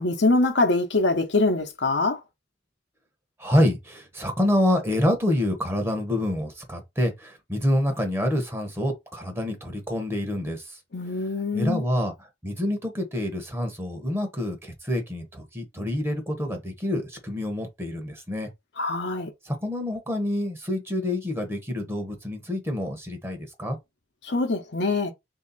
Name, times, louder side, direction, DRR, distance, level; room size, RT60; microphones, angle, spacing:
voice 1, 0.0-2.2 10.9-11.8 18.8-19.3 24.2-25.1, left 2 dB, 80° left, 0.8 m, -23 dB
voice 2, 3.4-10.8 11.5-18.5 19.4-23.8, left 1 dB, 15° right, 0.9 m, -27 dB
3.1 x 2.8 x 4.0 m
head